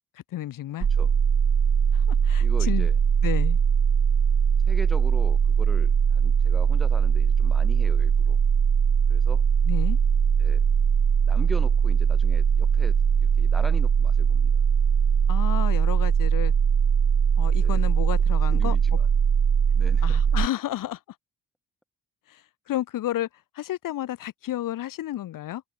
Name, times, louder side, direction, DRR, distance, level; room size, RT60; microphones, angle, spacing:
voice 1, 0.3-0.9 1.9-2.9 3.2-3.6 9.6-10.0 15.3-16.5 17.4-18.8 20.0-21.0 22.3-23.3 23.5-25.6, left 13 dB, 85° left, 2.9 m, -31 dB
sound 1, 0.8-20.5, right 7 dB, 35° right, 1.9 m, -21 dB
voice 2, 2.4-3.0 4.7-8.4 9.1-9.4 10.4-10.6 11.3-14.5 17.5-17.9 18.5-19.1 19.7-20.2, equal, ahead, 5.8 m, -40 dB
open air
cardioid pair, 160°, 32 cm